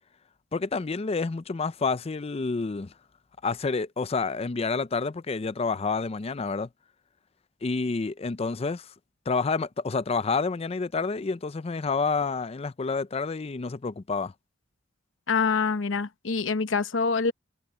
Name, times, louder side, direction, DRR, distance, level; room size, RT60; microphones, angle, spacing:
voice 1, 0.5-2.9 3.4-6.7 7.6-8.9 9.3-14.3, left 4 dB, 30° left, 0.5 m, -29 dB
voice 2, 15.3-17.3, left 5 dB, 80° left, 1.0 m, -25 dB
head